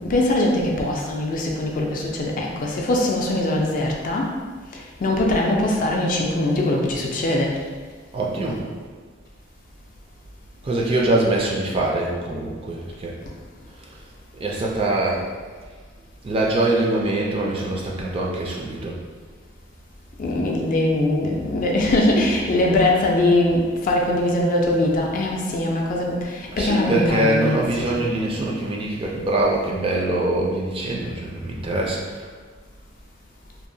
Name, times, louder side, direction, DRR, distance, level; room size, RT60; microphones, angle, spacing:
voice 1, 0.0-4.3 4.7-7.5 20.2-28.0, left 1 dB, 45° left, -1 dB, 0.3 m, -22 dB
voice 2, 8.1-8.7 10.6-13.1 14.4-15.3 16.2-19.0 26.5-32.3, right 1 dB, 30° right, -3 dB, 0.3 m, -23 dB
2.8 x 2.0 x 2.6 m, 1.5 s
head